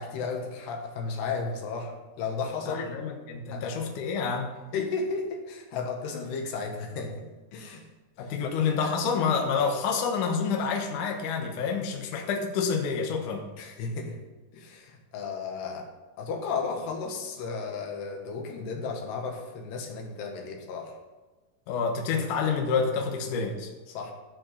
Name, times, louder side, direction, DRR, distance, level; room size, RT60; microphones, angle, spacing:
voice 1, 0.0-2.9 3.5-3.8 4.7-7.9 8.2-8.5 13.6-14.2 14.5-15.9 16.2-20.9 23.9-24.1, left 4 dB, 80° left, 2 dB, 3.6 m, -34 dB
voice 2, 2.7-4.5 8.2-13.5 21.7-23.7, left 5 dB, 65° left, 2 dB, 2.4 m, -28 dB
13.5 x 7.6 x 5.7 m, 1.2 s
omnidirectional pair, 4.7 m